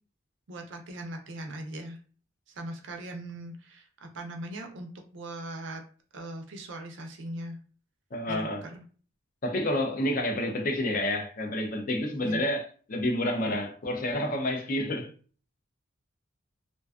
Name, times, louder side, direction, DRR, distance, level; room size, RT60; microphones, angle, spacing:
voice 1, 0.5-2.0 2.5-5.8 6.1-7.6 8.3-8.8 12.2-12.4, right 1 dB, 60° right, 0.5 m, -40 dB
voice 2, 8.1-8.7 9.4-15.1, left 1 dB, 40° left, 0.4 m, -29 dB
2.5 x 2.2 x 2.4 m
head